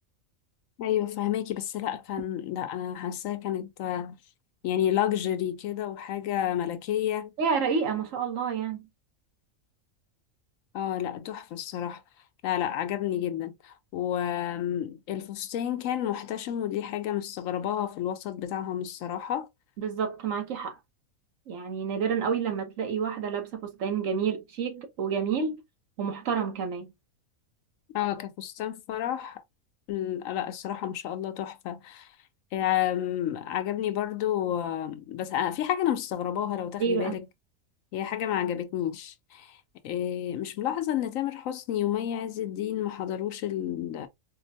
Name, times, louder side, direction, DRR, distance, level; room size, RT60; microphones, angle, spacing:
voice 1, 0.8-4.2 4.6-7.3 10.7-12.0 12.4-19.5 27.9-29.4 29.9-32.1 32.5-37.2 37.9-39.6 39.8-44.1, left 11 dB, 75° left, 0.9 m, -30 dB
voice 2, 7.4-8.9 19.8-20.8 21.5-25.6 26.0-26.9 36.8-37.1, right 6 dB, 70° right, 1.3 m, -29 dB
4.2 x 2.1 x 2.6 m
omnidirectional pair, 1.4 m